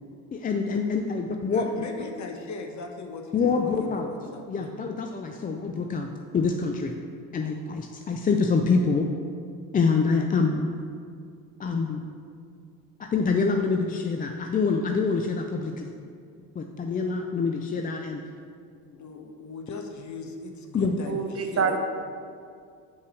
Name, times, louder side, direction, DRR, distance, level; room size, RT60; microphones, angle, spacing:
voice 1, 0.3-1.7 3.3-4.1 4.5-6.1 6.3-6.9 7.3-9.1 9.7-10.8 11.6-12.0 13.1-15.9 16.6-18.2 20.7-20.9, left 4 dB, 20° left, 4 dB, 0.4 m, -25 dB
voice 2, 1.5-4.7 18.9-21.8, left 3 dB, 45° left, 3 dB, 1.0 m, -38 dB
voice 3, 21.1-21.8, right 6 dB, 35° right, 5 dB, 0.8 m, -26 dB
5.6 x 4.8 x 6.2 m, 2.3 s
supercardioid pair, 85°, 42 cm